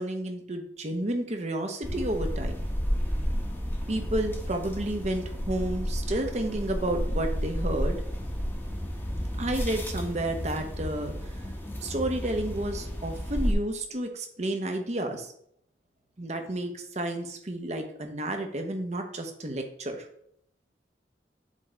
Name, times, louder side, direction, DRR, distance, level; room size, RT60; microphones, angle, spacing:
voice 1, 0.0-2.6 3.9-8.0 9.4-11.3 11.8-15.3 16.2-20.1, right 1 dB, 40° right, 5 dB, 0.8 m, -31 dB
sound 1, 1.8-13.5, equal, 10° left, 0.9 m, -32 dB
7.5 x 3.4 x 3.8 m, 0.69 s
head